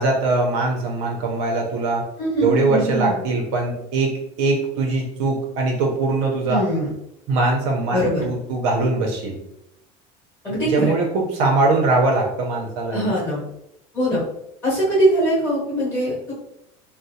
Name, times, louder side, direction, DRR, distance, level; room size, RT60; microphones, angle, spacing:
voice 1, 0.0-2.0 2.4-6.6 7.3-9.4 10.6-13.1, right 3 dB, 65° right, 0 dB, 0.7 m, -21 dB
voice 2, 2.2-3.2 6.5-6.9 7.9-8.2 10.4-11.0 12.9-13.4 13.9-14.2 14.6-16.3, right 1 dB, 15° left, -6 dB, 1.2 m, -21 dB
3.9 x 2.1 x 2.7 m, 0.82 s
cardioid pair, 170°, 14 cm